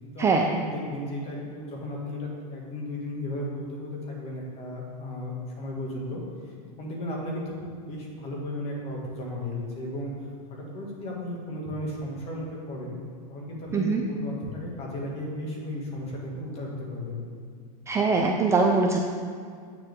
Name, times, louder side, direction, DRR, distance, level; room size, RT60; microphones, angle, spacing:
voice 1, 0.0-10.1 10.5-13.0 13.3-17.2, left 1 dB, 30° left, -2 dB, 2.1 m, -35 dB
voice 2, 17.9-19.0, right 4 dB, 15° right, 1 dB, 0.4 m, -22 dB
8.8 x 6.8 x 3.6 m, 2.2 s
supercardioid pair, 140°, 20 cm